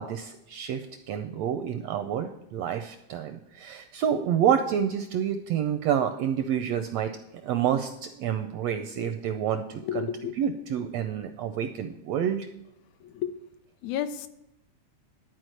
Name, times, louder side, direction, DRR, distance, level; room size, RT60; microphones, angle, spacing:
voice 1, 0.0-7.1 7.4-10.1 10.4-12.5, right 9 dB, 80° right, 8 dB, 1.5 m, -28 dB
voice 2, 9.8-10.4 13.0-13.3 13.8-14.3, left 9 dB, 80° left, 10 dB, 1.8 m, -31 dB
11.5 x 4.7 x 7.7 m, 0.85 s
omnidirectional pair, 3.5 m